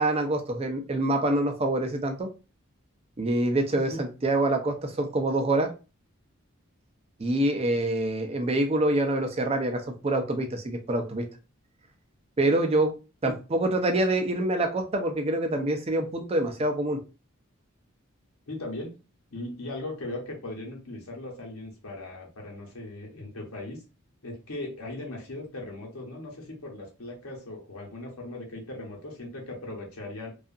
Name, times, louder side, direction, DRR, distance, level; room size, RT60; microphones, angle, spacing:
voice 1, 0.0-2.3 3.2-5.7 7.2-11.2 12.4-12.9 13.2-17.0, right 1 dB, 30° right, 5 dB, 0.4 m, -26 dB
voice 2, 18.5-19.0 19.3-23.8 24.2-30.3, left 2 dB, 85° left, 0 dB, 0.9 m, -38 dB
2.7 x 2.4 x 2.4 m, 0.31 s
head